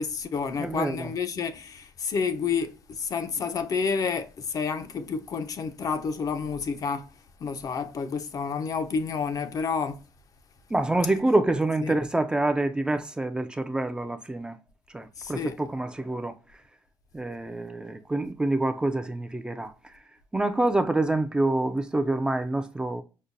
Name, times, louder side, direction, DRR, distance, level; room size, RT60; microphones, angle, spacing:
voice 1, 0.0-7.1 7.4-10.0 11.8-11.9 15.2-15.6, left 5 dB, 45° left, 0.5 m, -29 dB
voice 2, 0.6-1.1 10.7-14.6 14.9-16.4 17.1-20.0 20.3-23.0, right 2 dB, 10° right, 0.4 m, -27 dB
5.3 x 2.1 x 2.5 m
cardioid pair, 105°, 8 cm